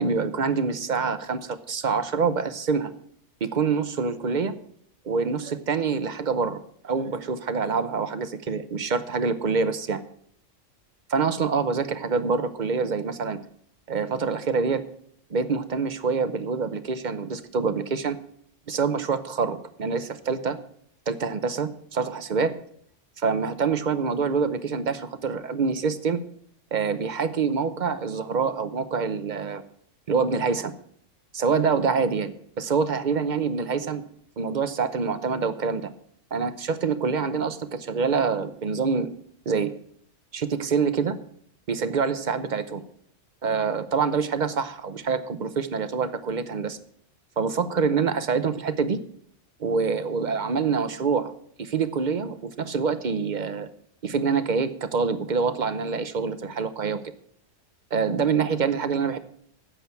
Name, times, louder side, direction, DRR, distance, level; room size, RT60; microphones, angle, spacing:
voice 1, 0.0-2.9 3.4-4.5 5.0-10.0 11.1-13.4 13.9-14.8 15.3-18.2 18.7-20.6 21.1-22.5 23.2-26.2 26.7-29.6 30.1-30.7 31.3-34.0 34.4-35.9 36.3-39.1 39.5-39.7 40.3-41.2 41.7-42.8 43.4-46.8 47.4-49.0 49.6-51.3 51.6-53.7 54.0-57.0 57.9-59.2, right 5 dB, 45° right, 11 dB, 0.8 m, -26 dB
10.0 x 7.5 x 8.2 m, 0.65 s
omnidirectional pair, 1.3 m